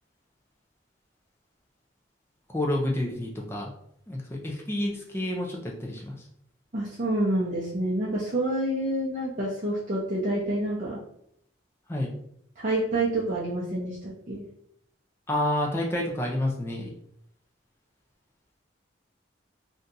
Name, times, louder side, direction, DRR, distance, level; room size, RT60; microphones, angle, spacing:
voice 1, 2.5-3.7 4.1-6.1 11.9-12.1 15.3-16.9, left 1 dB, 15° left, -1 dB, 0.5 m, -29 dB
voice 2, 6.7-11.0 12.6-14.5, right 1 dB, 40° right, -7 dB, 0.6 m, -28 dB
2.7 x 2.3 x 3.9 m, 0.72 s
head